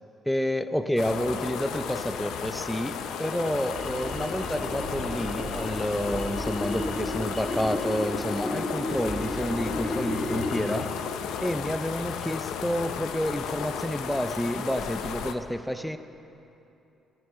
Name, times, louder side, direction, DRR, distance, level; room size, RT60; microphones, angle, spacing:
voice 1, 0.3-10.9 11.4-16.0, equal, 5° left, 10 dB, 0.5 m, -29 dB
sound 1, 1.0-15.3, left 7 dB, 85° left, 0.5 m, -34 dB
sound 2, 2.3-10.9, left 1 dB, 35° left, 1.8 m, -34 dB
sound 3, 3.7-10.0, right 1 dB, 40° right, 2.7 m, -40 dB
15.0 x 9.6 x 3.7 m, 2.8 s
cardioid pair, 90°, 0 cm